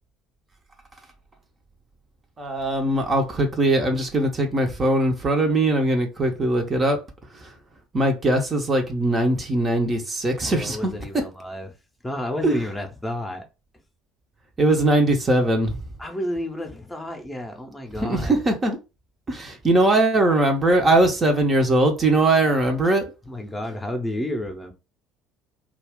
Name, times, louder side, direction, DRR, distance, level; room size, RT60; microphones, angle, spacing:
voice 1, 2.4-7.0 7.9-10.9 12.4-12.6 14.6-15.8 18.0-18.8 19.3-23.1, right 2 dB, 30° right, 0.7 m, -20 dB
voice 2, 10.4-11.7 12.0-13.5 16.0-18.3 22.8-23.0 23.3-24.7, left 1 dB, 10° left, 0.7 m, -31 dB
2.3 x 2.3 x 3.5 m
figure-of-eight pair, 60°, 0 cm